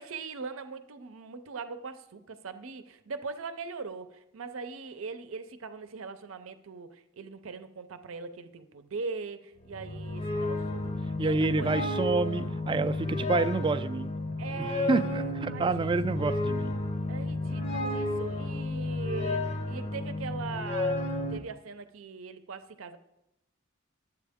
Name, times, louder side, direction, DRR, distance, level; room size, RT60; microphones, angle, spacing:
voice 1, 0.0-11.7 14.4-16.2 17.1-23.0, right 4 dB, 85° right, 10 dB, 0.6 m, -41 dB
sound 1, 9.6-21.4, left 2 dB, 35° left, 0.6 m, -32 dB
voice 2, 11.2-14.1 14.6-16.8, right 4 dB, 25° right, 11 dB, 0.3 m, -28 dB
11.5 x 8.0 x 3.6 m, 0.85 s
head